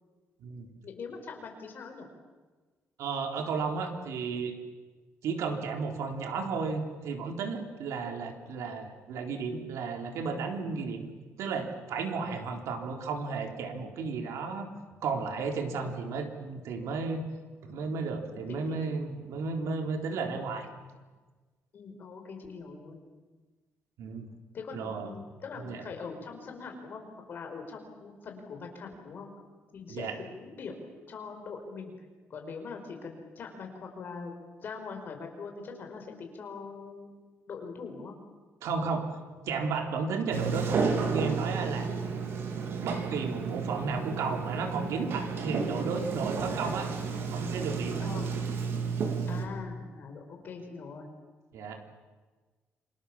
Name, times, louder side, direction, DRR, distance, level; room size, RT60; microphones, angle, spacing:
voice 1, 0.8-2.1 15.7-15.9 18.5-18.9 21.7-23.0 24.5-29.3 29.7-30.8 31.1-31.9 32.3-34.3 34.6-37.1 37.5-38.2 48.0-48.3 49.3-51.1, left 5 dB, 45° left, 4 dB, 5.1 m, -42 dB
voice 2, 3.0-4.5 5.2-11.1 11.4-14.7 15.0-17.2 17.6-20.7 24.0-24.3 24.7-25.2 25.6-25.8 29.9-30.2 38.6-39.1 39.4-41.9 42.8-46.9 47.2-48.0 51.5-52.0, right 4 dB, 90° right, 4 dB, 3.7 m, -33 dB
Sliding door, 40.3-49.5, right 5 dB, 55° right, 3.5 m, -32 dB
28.0 x 26.0 x 7.4 m, 1.3 s
cardioid pair, 175°, 5 cm